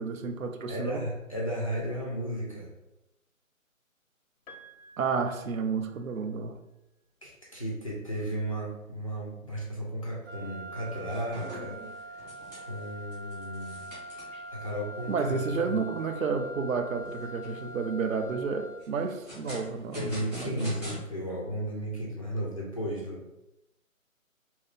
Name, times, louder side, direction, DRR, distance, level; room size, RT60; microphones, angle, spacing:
voice 1, 0.0-1.1 5.0-6.6 15.1-20.7, right 5 dB, 75° right, 6 dB, 0.5 m, -31 dB
voice 2, 0.7-2.7 7.2-11.8 12.1-12.2 12.6-13.9 14.5-15.8 19.9-23.3, equal, 25° left, -4 dB, 0.4 m, -34 dB
Piano, 4.5-6.5 7.7-7.8, right 1 dB, 75° left, 0.7 m, -53 dB
Wind instrument woodwind instrument, 10.2-19.0, right 1 dB, 40° right, 0.7 m, -43 dB
sound 1, 10.3-10.5 10.8-14.5 15.0-15.1 15.6-15.7 16.1-16.6 17.1-17.7 18.8-21.0, left 1 dB, 5° right, 0.8 m, -44 dB
2.8 x 2.6 x 3.6 m, 0.94 s
figure-of-eight pair, 145°, 41 cm